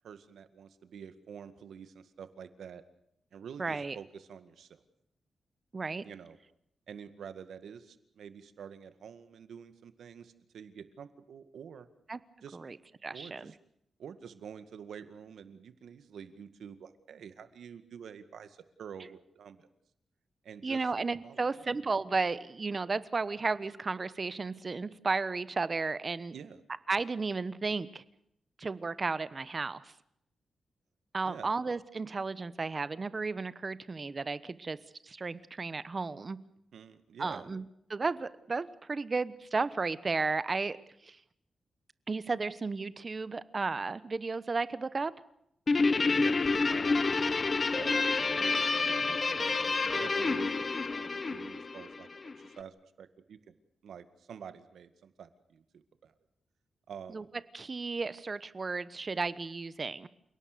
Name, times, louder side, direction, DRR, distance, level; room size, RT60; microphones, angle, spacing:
voice 1, 0.0-2.8 3.3-4.8 6.0-6.4 6.9-11.9 12.4-12.6 13.1-13.6 14.0-19.7 20.4-20.8 21.2-21.5 26.3-26.6 31.2-31.5 36.7-37.5 46.1-47.3 47.7-52.1 52.4-53.5 53.8-56.1 56.9-57.2, right 7 dB, 85° right, 11 dB, 2.0 m, -48 dB
voice 2, 3.6-4.0 5.7-6.1 12.1-12.2 12.5-12.8 13.0-13.5 20.6-26.3 26.9-28.0 28.6-29.9 31.1-34.8 35.0-36.4 37.2-37.6 37.9-40.8 41.0-41.2 42.1-45.1 57.1-57.2 57.5-60.1, right 4 dB, 30° right, 16 dB, 1.1 m, -33 dB
Guitar, 45.7-52.3, left 3 dB, 35° left, 1.1 m, -29 dB
29.5 x 18.0 x 6.9 m, 0.74 s
wide cardioid pair, 130°, 0 cm